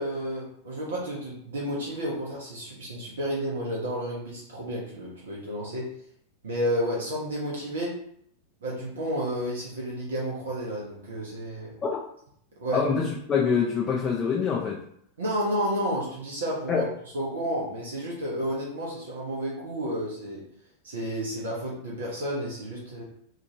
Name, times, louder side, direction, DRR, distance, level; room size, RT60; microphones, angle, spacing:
voice 1, 0.0-5.9 6.4-8.0 8.6-11.7 12.6-12.9 15.2-16.9 17.1-20.4 20.8-23.0, equal, 65° right, -4 dB, 0.7 m, -31 dB
voice 2, 12.7-14.8 16.7-16.9, left 6 dB, 25° left, -2 dB, 0.4 m, -25 dB
2.9 x 2.5 x 2.7 m, 0.68 s
figure-of-eight pair, 90°, 0 cm